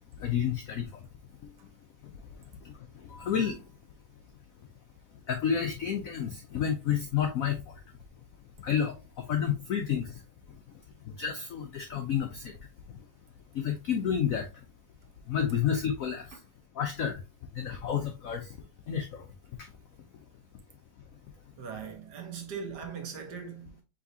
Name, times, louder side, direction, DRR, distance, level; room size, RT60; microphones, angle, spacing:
voice 1, 0.2-0.9 2.6-2.7 3.1-3.6 5.3-7.6 8.6-10.1 11.2-12.5 13.5-14.4 15.3-16.3 16.8-17.2 17.5-18.5 18.9-19.2, left 8 dB, 80° left, 0.7 m, -30 dB
voice 2, 21.6-23.8, right 6 dB, 65° right, 1.3 m, -40 dB
5.3 x 3.2 x 2.6 m
omnidirectional pair, 2.2 m